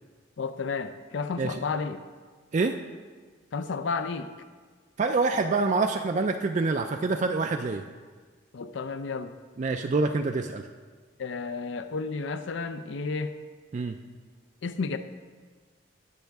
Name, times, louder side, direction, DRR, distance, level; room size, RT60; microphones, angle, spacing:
voice 1, 0.4-2.0 3.5-4.3 8.5-9.3 11.2-13.3 14.6-15.0, left 4 dB, 65° left, 10 dB, 0.4 m, -32 dB
voice 2, 5.0-7.8 9.6-10.7 13.7-14.0, right 3 dB, 35° right, 5 dB, 0.3 m, -26 dB
18.0 x 6.3 x 3.5 m, 1.5 s
head